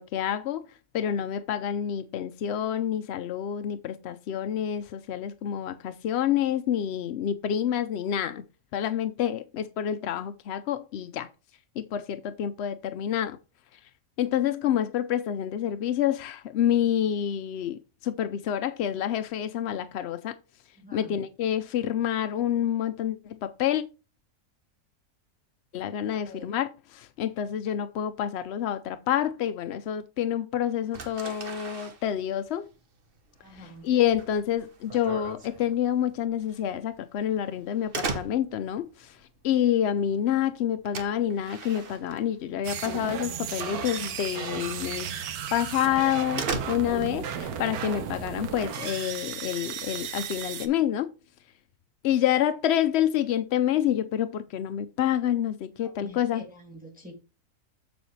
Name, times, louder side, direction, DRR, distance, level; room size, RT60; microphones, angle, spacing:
voice 1, 0.0-8.4 8.7-11.3 11.8-13.4 13.7-13.8 14.2-20.4 20.9-23.8 25.7-32.7 33.8-51.1 52.0-56.4, left 10 dB, 70° left, 0.6 m, -28 dB
voice 2, 20.8-21.2 26.0-26.5 33.4-33.9 55.8-57.1, equal, 5° right, 2.0 m, -47 dB
sound 1, 30.9-42.8 43.1-43.6 43.9-44.1 44.6-44.7 45.1-45.2 45.5-47.2, right 4 dB, 40° right, 1.0 m, -38 dB
sound 2, 42.6-50.7, right 8 dB, 75° right, 1.3 m, -35 dB
7.3 x 7.0 x 3.1 m
omnidirectional pair, 1.6 m